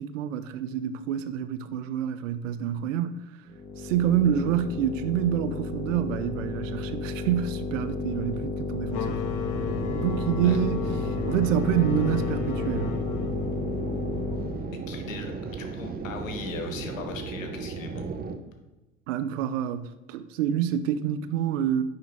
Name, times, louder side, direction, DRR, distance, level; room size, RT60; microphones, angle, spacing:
voice 1, 0.0-3.2 3.8-9.5 9.9-13.0 19.1-21.8, right 9 dB, 75° right, 0.6 m, -27 dB
sound 1, 3.5-14.7, left 3 dB, 25° left, 1.7 m, -32 dB
sound 2, 8.9-14.3, left 7 dB, 50° left, 1.0 m, -35 dB
sound 3, 9.5-18.4, right 4 dB, 25° right, 0.8 m, -36 dB
voice 2, 14.9-15.3 15.6-18.1, left 4 dB, 85° left, 1.1 m, -38 dB
9.4 x 3.8 x 3.5 m
hypercardioid pair, 75°, 38 cm